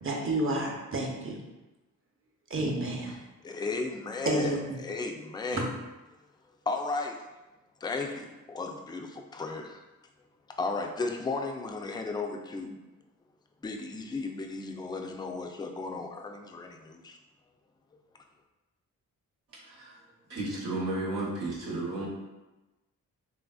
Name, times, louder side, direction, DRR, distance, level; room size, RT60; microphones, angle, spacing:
voice 1, 0.0-1.4 2.5-3.2 4.3-4.8 5.5-5.6, right 2 dB, 35° right, -1 dB, 0.7 m, -30 dB
voice 2, 3.4-5.7 6.7-7.3 7.8-9.8 10.6-12.8 13.6-17.2, left 3 dB, 15° left, 3 dB, 0.3 m, -35 dB
voice 3, 20.3-22.1, right 2 dB, 85° right, -5 dB, 1.0 m, -33 dB
3.3 x 2.4 x 2.3 m, 1.1 s
supercardioid pair, 50°, 35 cm